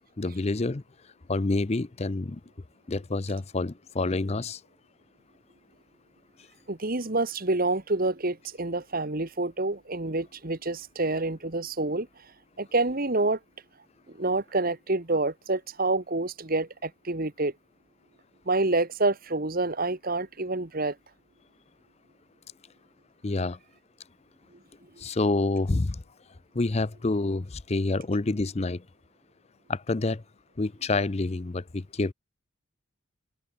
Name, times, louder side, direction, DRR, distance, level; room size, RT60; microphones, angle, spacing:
voice 1, 0.2-0.8 1.3-2.4 2.9-4.6 23.2-23.6 25.0-26.0 26.5-28.8 29.7-30.2 30.6-32.1, left 2 dB, 30° left, 0.5 m, -27 dB
voice 2, 6.7-12.1 12.6-13.4 14.1-17.5 18.4-20.9, right 2 dB, 40° right, 1.4 m, -27 dB
head